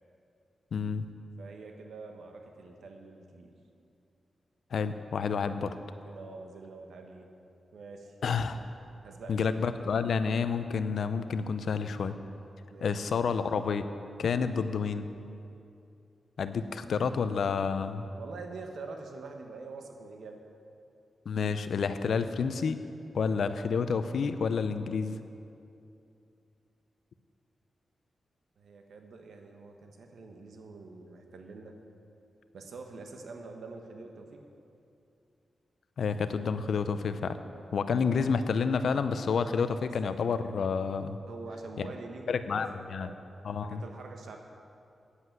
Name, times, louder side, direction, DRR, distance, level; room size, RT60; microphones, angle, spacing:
voice 1, 0.7-1.1 4.7-5.7 8.2-8.6 9.3-12.1 12.8-13.9 14.2-15.1 16.4-18.1 21.3-22.8 23.1-25.2 36.0-37.4 37.7-41.2 41.8-41.9 42.3-43.1 43.4-43.8, left 5 dB, 75° left, 11 dB, 0.5 m, -29 dB
voice 2, 1.4-3.6 5.4-5.6 6.0-7.3 7.7-8.2 9.0-9.6 12.7-13.0 18.2-20.4 28.6-31.8 32.5-34.4 37.5-37.7 41.3-43.2 43.6-44.4, right 3 dB, 80° right, 3 dB, 1.2 m, -45 dB
9.7 x 8.1 x 7.6 m, 2.6 s
cardioid pair, 60°, 0 cm